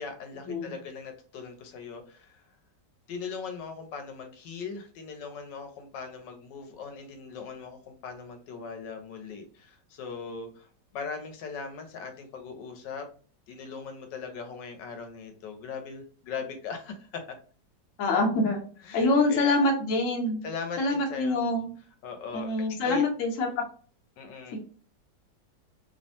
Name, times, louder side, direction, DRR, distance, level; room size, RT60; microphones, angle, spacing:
voice 1, 0.0-2.4 3.1-10.7 10.9-13.1 13.5-17.2 18.8-19.7 20.4-21.4 22.0-22.5 22.8-23.0 24.2-24.6, left 5 dB, 90° left, 5 dB, 1.3 m, -39 dB
voice 2, 18.0-18.6 18.9-20.4 20.8-21.7 22.3-23.6 24.5-24.6, left 2 dB, 55° left, 1 dB, 1.0 m, -25 dB
3.2 x 2.1 x 2.6 m, 0.41 s
omnidirectional pair, 1.9 m